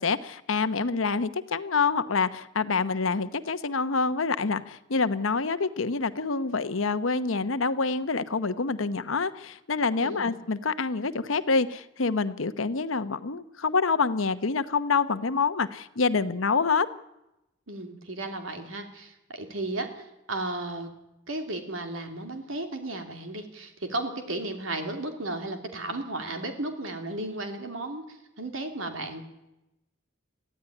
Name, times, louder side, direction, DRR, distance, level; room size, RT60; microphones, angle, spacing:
voice 1, 0.0-16.9, left 4 dB, 90° left, 12 dB, 1.0 m, -27 dB
voice 2, 10.0-10.4 17.7-20.9 21.3-29.2, right 2 dB, 85° right, 5 dB, 3.0 m, -34 dB
22.5 x 15.0 x 9.9 m, 0.93 s
head